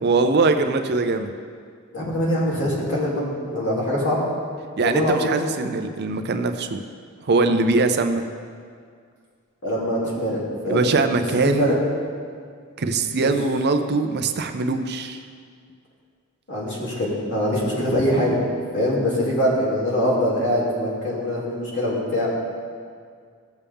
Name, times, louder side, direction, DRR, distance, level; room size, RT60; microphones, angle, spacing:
voice 1, 0.0-1.3 4.8-6.8 7.2-8.2 10.7-11.7 12.8-15.2, right 3 dB, 50° right, 8 dB, 0.6 m, -22 dB
voice 2, 1.9-3.2 3.5-4.2 4.8-5.3 9.6-10.9 11.6-11.7 13.0-13.1 16.5-18.4 18.7-22.3, equal, 60° left, -6 dB, 2.9 m, -23 dB
15.5 x 7.0 x 3.6 m, 2.1 s
head